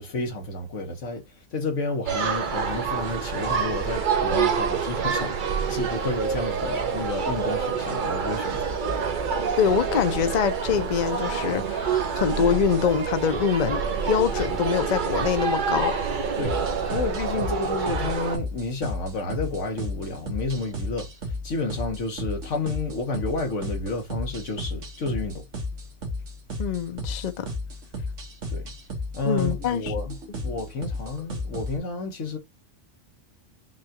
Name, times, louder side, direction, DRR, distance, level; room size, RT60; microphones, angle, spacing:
voice 1, 0.0-8.6 16.4-16.6 16.9-25.4 28.5-28.7 29.1-32.4, left 2 dB, 90° left, 1.6 m, -31 dB
sound 1, 2.1-18.4, right 6 dB, 50° right, 0.8 m, -27 dB
voice 2, 9.6-16.0 26.6-27.5 29.2-29.9, left 7 dB, 45° left, 0.7 m, -24 dB
sound 2, 16.4-31.8, left 2 dB, 90° right, 1.7 m, -34 dB
5.7 x 2.4 x 2.8 m
omnidirectional pair, 1.2 m